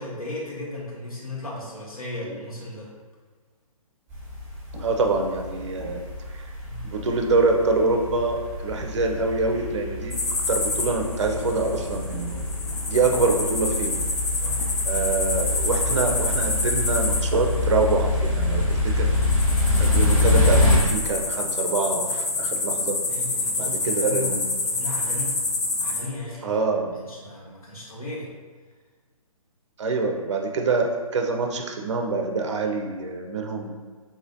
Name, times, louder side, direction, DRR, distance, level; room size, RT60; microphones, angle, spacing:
voice 1, 0.0-2.9 6.6-6.9 13.0-13.3 14.3-14.6 23.1-24.4 24.6-25.4 25.8-26.6 27.0-28.3, left 2 dB, 70° left, -5 dB, 1.2 m, -36 dB
sound 1, 4.1-20.8, left 2 dB, 10° right, 1.1 m, -26 dB
voice 2, 4.8-6.0 6.8-10.1 10.5-12.4 12.9-14.0 14.8-19.1 19.8-23.0 23.6-24.5 26.4-26.9 29.8-33.7, right 3 dB, 50° right, 3 dB, 0.5 m, -25 dB
sound 2, 10.1-26.0, left 3 dB, 50° left, 0.7 m, -28 dB
3.9 x 3.0 x 2.6 m, 1.5 s
figure-of-eight pair, 135°, 19 cm